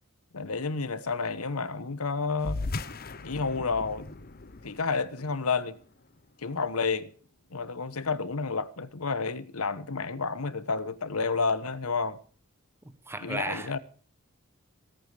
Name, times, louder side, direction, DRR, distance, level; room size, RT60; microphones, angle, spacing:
voice 1, 0.3-2.6 3.2-4.1 4.6-5.8 6.4-7.1 7.5-12.2 13.2-13.8, left 4 dB, 80° left, 1.1 m, -30 dB
sound 1, 2.4-7.3, left 3 dB, 45° left, 0.8 m, -39 dB
voice 2, 12.8-13.8, right 2 dB, 10° right, 1.2 m, -35 dB
17.5 x 8.5 x 6.8 m
head